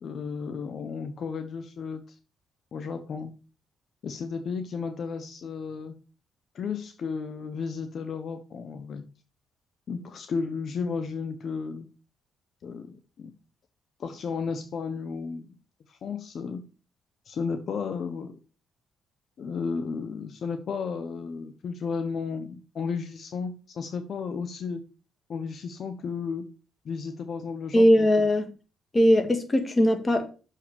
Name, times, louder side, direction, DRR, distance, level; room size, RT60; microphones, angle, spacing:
voice 1, 0.0-2.2 2.7-3.3 4.0-5.9 6.5-9.0 9.9-11.9 12.6-13.3 14.0-15.6 15.9-16.6 17.3-18.4 19.4-24.8 25.3-26.4 26.8-28.1, left 5 dB, 60° left, 1.0 m, -33 dB
voice 2, 27.7-28.5 28.9-30.3, equal, 25° left, 1.9 m, -20 dB
6.4 x 5.6 x 7.1 m
cardioid pair, 90°, 0 cm